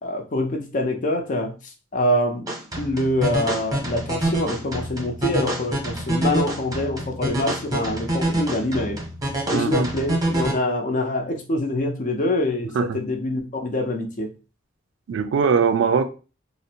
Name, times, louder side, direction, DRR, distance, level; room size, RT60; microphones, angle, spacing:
voice 1, 0.0-1.5 1.9-2.5 2.8-9.0 9.5-14.3, left 1 dB, 45° left, 0.5 m, -25 dB
sound 1, 2.5-10.5, right 1 dB, 20° right, 0.7 m, -26 dB
voice 2, 9.5-9.9 12.7-13.0 15.1-16.0, right 5 dB, 75° right, 0.3 m, -21 dB
2.5 x 2.0 x 2.7 m
head